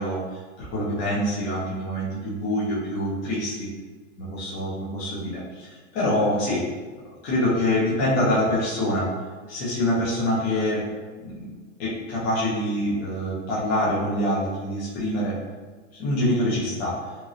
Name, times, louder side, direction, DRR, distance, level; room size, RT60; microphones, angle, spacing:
voice 1, 0.0-3.7 4.2-6.6 7.2-9.1 9.5-10.8 11.2-11.3 11.8-15.4 15.9-17.0, left 1 dB, 25° left, -8 dB, 0.3 m, -25 dB
3.0 x 2.4 x 2.5 m, 1.4 s
supercardioid pair, 155°, 37 cm